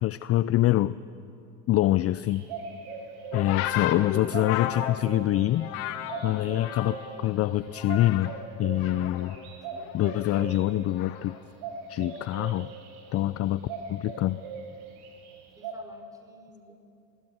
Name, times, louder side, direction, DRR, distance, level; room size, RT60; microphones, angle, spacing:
voice 1, 0.0-1.0 1.7-2.5 3.3-5.7 6.2-8.3 8.6-9.4 9.9-11.4 11.9-12.7 13.1-14.4, left 14 dB, 40° left, 16 dB, 0.5 m, -25 dB
sound 1, 2.2-15.7, right 5 dB, 70° right, 5.4 m, -40 dB
sound 2, 3.3-7.2 7.5-8.4 8.7-11.4 12.3-12.6, left 12 dB, 80° left, 1.6 m, -35 dB
voice 2, 15.5-16.8, equal, 10° right, 5 dB, 4.1 m, -54 dB
23.0 x 20.0 x 8.1 m, 2.7 s
supercardioid pair, 105°, 40 cm